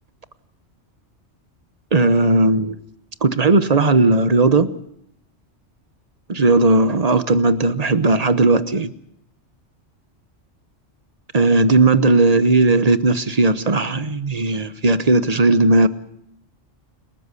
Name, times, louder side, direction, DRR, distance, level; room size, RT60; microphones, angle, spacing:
voice 1, 1.9-2.8 3.2-4.7 6.3-8.9 11.3-15.9, right 2 dB, 35° right, 13 dB, 1.1 m, -16 dB
30.0 x 13.5 x 8.3 m, 0.74 s
omnidirectional pair, 1.2 m